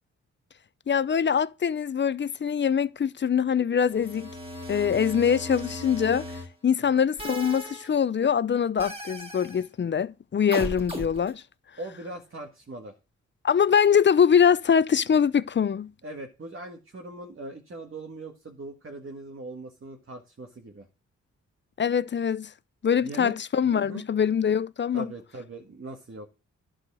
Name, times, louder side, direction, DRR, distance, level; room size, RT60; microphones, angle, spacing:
voice 1, 0.9-4.3 4.7-6.3 6.6-11.4 13.4-15.9 21.8-22.5 22.8-25.1, left 7 dB, 40° left, 0.5 m, -23 dB
sound 1, 3.8-6.5 7.2-7.9 8.8-9.6 10.5-11.3, equal, 20° right, 2.9 m, -37 dB
voice 2, 11.8-12.9 16.0-20.9 23.0-23.3 23.6-24.0 24.9-26.3, right 2 dB, 45° right, 1.8 m, -40 dB
11.0 x 4.8 x 6.2 m
cardioid pair, 65°, 30 cm